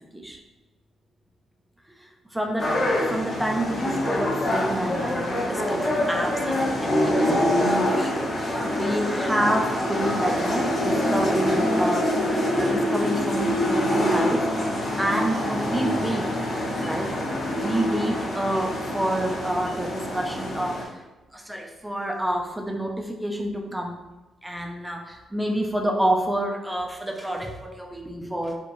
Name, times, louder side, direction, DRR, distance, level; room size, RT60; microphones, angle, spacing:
voice 1, 2.0-2.8 3.1-12.1 12.5-14.5 15.0-16.3 16.8-17.1 17.6-21.0 21.3-24.0 24.4-28.6, right 1 dB, 5° right, 1 dB, 0.4 m, -28 dB
sound 1, 2.6-20.8, left 1 dB, 30° left, 0.9 m, -25 dB
4.3 x 2.9 x 2.6 m, 1.1 s
cardioid pair, 145°, 0 cm